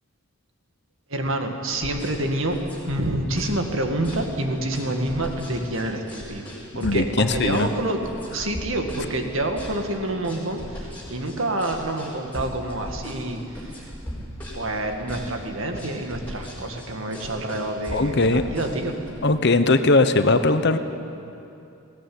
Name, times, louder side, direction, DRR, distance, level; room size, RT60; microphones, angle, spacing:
voice 1, 1.1-2.6 2.9-6.5 6.7-8.0 8.3-13.9 14.5-18.9, right 1 dB, 65° right, 4 dB, 2.1 m, -27 dB
sound 1, 1.7-19.1, equal, 10° left, 4.9 m, -37 dB
voice 2, 6.8-7.7 17.9-18.4 19.2-20.8, left 3 dB, 50° left, 10 dB, 0.9 m, -19 dB
21.0 x 17.0 x 9.5 m, 2.7 s
head